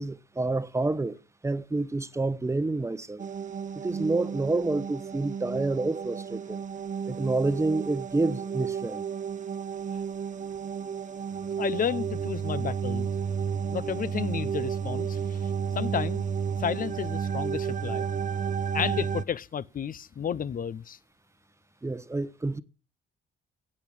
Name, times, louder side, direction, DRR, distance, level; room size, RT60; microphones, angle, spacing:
voice 1, 0.0-3.3 3.8-6.6 7.1-9.0 21.8-22.6, right 2 dB, 15° right, 1.0 m, -28 dB
sound 1, 3.2-19.3, right 7 dB, 40° right, 0.8 m, -32 dB
voice 2, 11.6-13.1 13.7-15.4 15.7-16.2 16.6-18.1 18.7-21.0, left 8 dB, 45° left, 0.7 m, -32 dB
16.0 x 8.8 x 8.6 m
cardioid pair, 90°, 20 cm